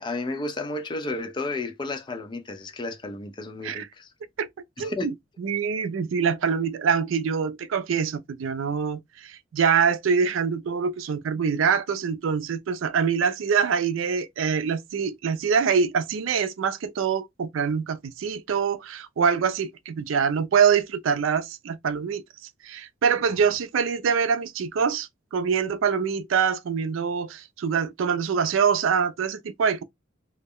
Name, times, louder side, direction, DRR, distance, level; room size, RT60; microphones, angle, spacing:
voice 1, 0.0-4.1 4.8-5.1, left 2 dB, 25° left, 0.3 m, -32 dB
voice 2, 4.8-22.2 22.6-29.8, right 6 dB, 80° right, 0.4 m, -25 dB
2.2 x 2.0 x 3.5 m
head